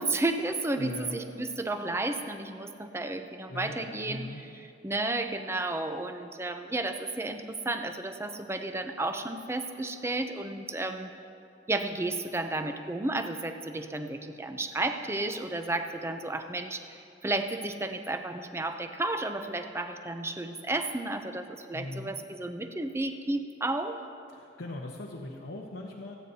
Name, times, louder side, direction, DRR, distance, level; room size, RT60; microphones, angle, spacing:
voice 1, 0.0-11.1 11.7-24.0, right 2 dB, 15° right, 7 dB, 0.6 m, -32 dB
voice 2, 0.8-1.2 3.5-4.4 21.7-22.1 24.3-26.1, left 1 dB, 90° left, -2 dB, 1.0 m, -39 dB
28.0 x 9.3 x 2.8 m, 2.6 s
head